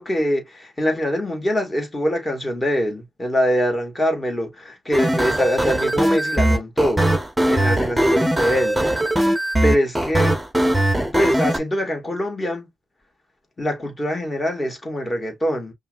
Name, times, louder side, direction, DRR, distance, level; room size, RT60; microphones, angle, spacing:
voice 1, 0.0-7.1 7.5-8.8 9.6-10.4 11.1-12.7 13.6-15.7, equal, 20° left, 2.2 m, -24 dB
sound 1, 4.9-11.6, right 1 dB, 5° right, 1.1 m, -20 dB
5.6 x 2.6 x 2.6 m
cardioid pair, 90°, 0 cm